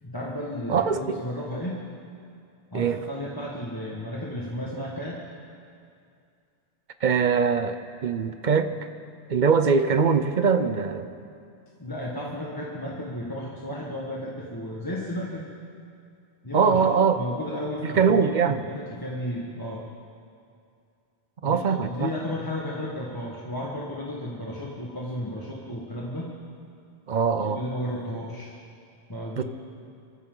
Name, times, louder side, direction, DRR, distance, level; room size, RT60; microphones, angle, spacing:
voice 1, 0.0-1.8 2.7-5.2 11.8-15.5 16.4-19.9 21.5-26.3 27.4-28.5 29.1-29.4, left 1 dB, 20° left, -5 dB, 1.6 m, -33 dB
voice 2, 0.7-1.2 2.7-3.0 7.0-8.7 9.3-11.1 16.5-17.2 17.8-18.6 21.4-22.1 27.1-27.6 29.4-29.5, right 6 dB, 50° right, 10 dB, 0.8 m, -22 dB
25.0 x 14.5 x 3.9 m, 2.4 s
omnidirectional pair, 1.1 m